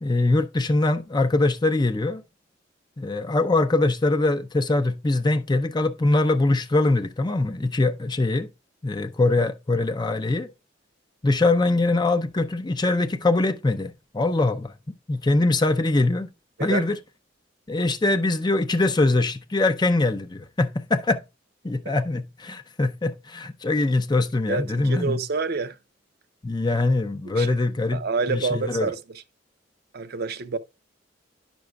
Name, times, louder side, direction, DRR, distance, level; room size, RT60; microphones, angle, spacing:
voice 1, 0.0-2.2 3.0-8.5 8.8-10.5 11.2-14.7 15.1-16.3 16.6-17.0 17.7-21.2 21.6-25.2 26.4-28.0 28.3-28.9, left 2 dB, 25° left, 0.6 m, -23 dB
voice 2, 24.5-25.8 27.3-27.5 27.9-29.2 29.9-30.6, right 4 dB, 55° right, 0.6 m, -28 dB
10.5 x 6.1 x 2.3 m
head